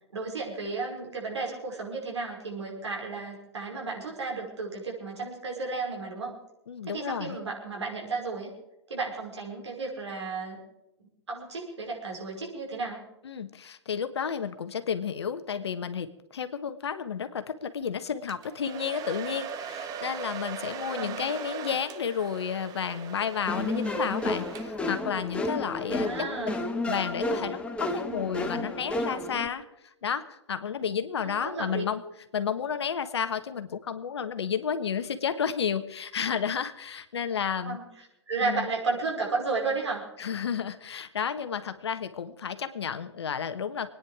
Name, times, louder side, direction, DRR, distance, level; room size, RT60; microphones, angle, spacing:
voice 1, 0.1-6.3 6.9-8.5 8.9-10.6 11.3-13.0 20.9-21.2 26.0-26.7 31.2-31.8 37.6-37.9 38.3-40.0, right 4 dB, 75° right, -1 dB, 5.4 m, -33 dB
voice 2, 6.7-7.4 13.2-26.1 26.9-29.6 30.0-32.0 32.3-37.8 38.4-38.7 40.2-43.9, left 7 dB, 70° left, 10 dB, 1.3 m, -31 dB
Domestic sounds home sounds, 18.3-25.0, right 7 dB, 25° right, 1.0 m, -39 dB
sound 1, 23.5-29.5, left 2 dB, 5° left, 1.5 m, -31 dB
25.0 x 10.0 x 4.9 m, 0.87 s
figure-of-eight pair, 115°, 14 cm